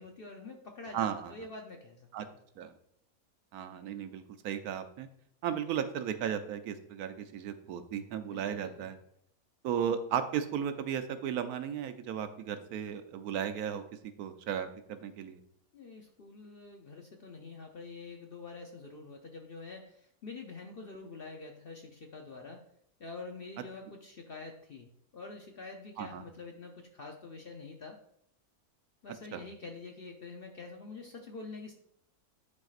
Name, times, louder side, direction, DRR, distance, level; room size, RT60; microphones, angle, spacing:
voice 1, 0.0-2.3 8.2-8.9 15.7-22.6 23.0-24.9 25.1-28.0 29.0-31.7, left 3 dB, 55° left, 2 dB, 0.6 m, -46 dB
voice 2, 0.9-1.3 2.1-2.3 2.6-2.7 3.5-5.1 5.4-9.0 9.6-13.8 14.2-15.4 26.0-26.2 29.3-29.4, right 8 dB, 80° right, 9 dB, 1.1 m, -35 dB
10.5 x 4.3 x 2.4 m, 0.71 s
omnidirectional pair, 1.6 m